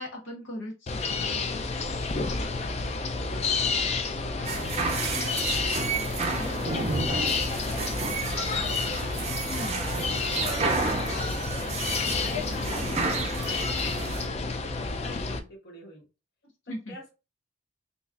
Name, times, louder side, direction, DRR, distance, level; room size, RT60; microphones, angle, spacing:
voice 1, 0.0-1.3 6.4-6.5 6.7-6.9 9.5-9.8 16.7-16.9, left 1 dB, 85° left, -2 dB, 1.4 m, -38 dB
sound 1, 0.9-15.4, left 4 dB, 35° left, 0.4 m, -30 dB
voice 2, 2.2-5.8 6.3-9.1 9.6-10.0 10.7-16.1 16.7-17.1, equal, 55° left, -2 dB, 1.3 m, -47 dB
sound 2, 4.5-14.3, right 4 dB, 35° right, 0.5 m, -31 dB
4.0 x 3.0 x 2.4 m, 0.29 s
head